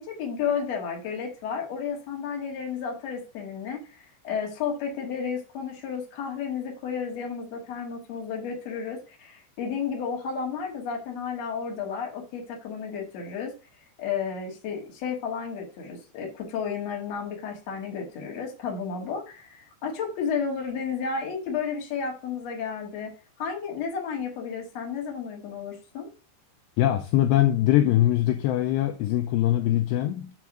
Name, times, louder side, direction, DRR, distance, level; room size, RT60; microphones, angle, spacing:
voice 1, 0.0-13.5 14.0-23.1 23.4-26.1, left 6 dB, 50° left, 2.2 m, -32 dB
voice 2, 26.8-30.3, left 13 dB, 85° left, 2.5 m, -22 dB
7.0 x 3.6 x 6.0 m
omnidirectional pair, 5.3 m